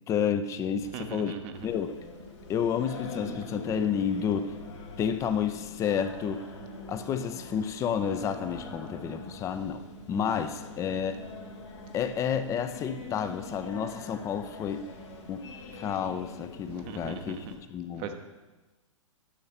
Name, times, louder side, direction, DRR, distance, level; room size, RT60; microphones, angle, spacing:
voice 1, 0.1-2.0 2.5-4.5 5.0-6.4 6.9-9.8 10.1-11.2 11.9-14.8 15.3-15.5 15.8-18.1, left 7 dB, 20° left, 10 dB, 0.5 m, -30 dB
voice 2, 0.9-1.5 16.7-17.5 18.0-18.1, right 7 dB, 30° right, 7 dB, 0.7 m, -39 dB
Singing, 1.5-17.5, left 3 dB, 60° left, 1.9 m, -44 dB
9.9 x 6.4 x 4.3 m, 1.2 s
figure-of-eight pair, 115°, 17 cm